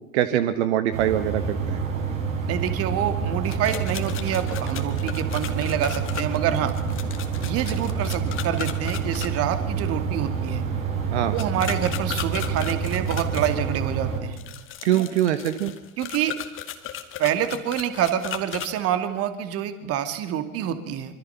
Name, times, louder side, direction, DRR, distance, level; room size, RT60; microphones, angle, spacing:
voice 1, 0.1-1.8 11.1-11.3 14.8-15.7, right 11 dB, 50° right, 10 dB, 1.5 m, -23 dB
sound 1, 0.9-14.2, right 6 dB, 65° right, 7.4 m, -28 dB
voice 2, 2.5-6.7 7.4-10.6 11.3-14.4 14.9-15.0 16.0-16.4 17.2-21.2, right 10 dB, 35° right, 10 dB, 2.5 m, -27 dB
sound 2, 3.4-9.3 11.4-13.5 14.3-18.7, left 11 dB, 30° left, 2.3 m, -36 dB
25.5 x 24.5 x 5.9 m, 0.93 s
figure-of-eight pair, 95°, 43 cm